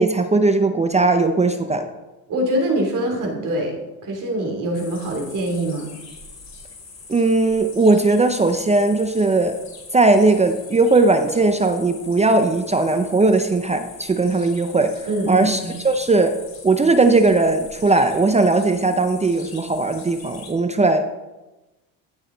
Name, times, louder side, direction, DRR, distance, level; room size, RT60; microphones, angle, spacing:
voice 1, 0.0-1.9 7.1-9.6 9.9-15.6 15.8-16.4 16.6-21.0, right 3 dB, 15° right, 7 dB, 0.6 m, -18 dB
voice 2, 2.3-3.8 4.0-5.9 15.1-15.7, right 1 dB, 45° right, 1 dB, 3.2 m, -24 dB
sound 1, 4.7-20.5, left 4 dB, 35° left, 3.1 m, -42 dB
15.5 x 6.4 x 3.9 m, 1.1 s
cardioid pair, 120°, 44 cm